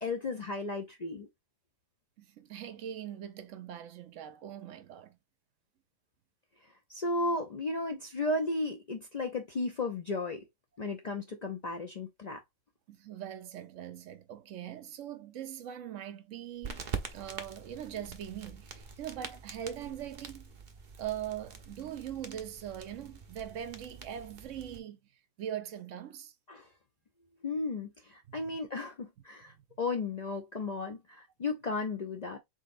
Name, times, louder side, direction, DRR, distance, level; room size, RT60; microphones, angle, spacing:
voice 1, 0.0-1.3 6.9-10.4 10.8-12.4 26.5-26.7 27.4-32.4, left 2 dB, 50° left, 0.5 m, -34 dB
voice 2, 2.2-5.2 12.9-16.8 17.1-20.5 21.0-25.0 25.4-26.3 28.3-28.6 29.4-29.6, right 10 dB, 75° right, 0.9 m, -41 dB
sound 1, 16.6-24.8, right 5 dB, 45° right, 0.7 m, -44 dB
3.9 x 3.9 x 2.5 m
omnidirectional pair, 1.4 m